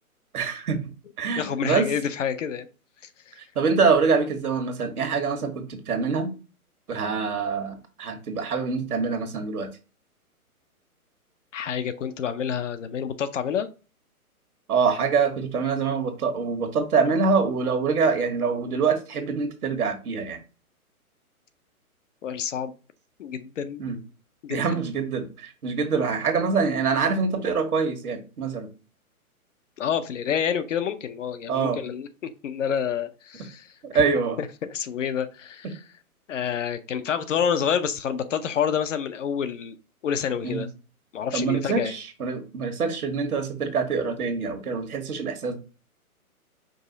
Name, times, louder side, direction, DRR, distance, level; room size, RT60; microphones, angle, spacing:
voice 1, 0.3-0.8 1.2-1.9 3.5-6.3 6.9-9.7 14.7-20.4 23.8-24.0 24.5-28.7 31.5-31.8 33.8-34.4 35.6-35.7 40.4-40.7 41.3-45.6, right 5 dB, 80° right, 7 dB, 1.4 m, -25 dB
voice 2, 1.4-2.7 11.5-13.7 22.2-22.7 23.2-23.9 24.4-24.8 29.8-34.0 34.4-35.8 36.3-39.7 40.0-40.7 41.1-41.9, left 8 dB, 55° left, 10 dB, 0.7 m, -28 dB
5.3 x 2.4 x 4.0 m, 0.33 s
hypercardioid pair, 145°, 44 cm